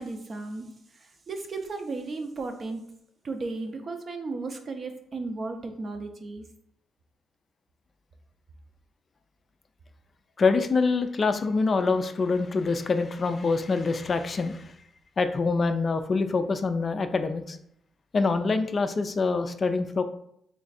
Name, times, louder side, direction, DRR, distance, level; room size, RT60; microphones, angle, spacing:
voice 1, 0.0-2.8 3.2-6.4, right 3 dB, 40° right, 5 dB, 0.6 m, -35 dB
voice 2, 10.4-14.7 15.2-17.6 18.1-20.0, left 4 dB, 40° left, 9 dB, 0.3 m, -25 dB
3.2 x 2.4 x 4.0 m, 0.71 s
cardioid pair, 90°, 0 cm